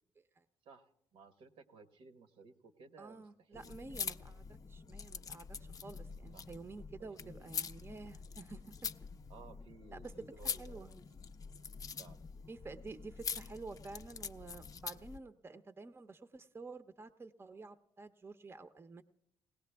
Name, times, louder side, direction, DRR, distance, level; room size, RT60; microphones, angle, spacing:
voice 1, 0.6-3.7 6.3-6.5 7.2-7.5 9.3-11.1 12.0-12.3, right 5 dB, 75° right, 7 dB, 1.2 m, -57 dB
voice 2, 3.0-8.6 9.9-10.1 10.4-10.9 12.5-19.0, right 3 dB, 25° right, 11 dB, 0.7 m, -50 dB
sound 1, 3.5-15.2, left 5 dB, 40° left, 0.5 m, -45 dB
20.5 x 17.5 x 3.4 m, 0.75 s
cardioid pair, 90°, 10 cm